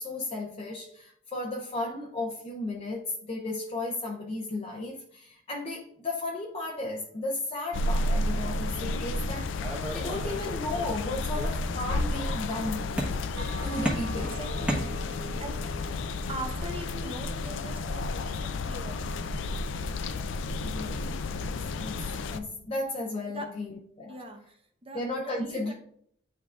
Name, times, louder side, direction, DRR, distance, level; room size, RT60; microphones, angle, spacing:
voice 1, 0.0-9.6 9.9-13.0 13.6-14.4 20.6-21.5 21.8-24.2 24.9-25.7, left 2 dB, 30° left, -1 dB, 0.6 m, -34 dB
sound 1, 7.7-22.4, left 2 dB, 70° left, 0.4 m, -32 dB
sound 2, 9.6-11.0 11.3-12.0 13.0-13.5 13.8-15.4, equal, 5° right, 1.2 m, -35 dB
Bell, 13.4-18.0, left 1 dB, 55° right, 1.2 m, -42 dB
voice 2, 14.2-15.6 16.3-19.3 23.3-23.5 24.1-25.7, right 1 dB, 30° right, 3 dB, 0.9 m, -42 dB
10.5 x 3.8 x 2.4 m, 0.67 s
head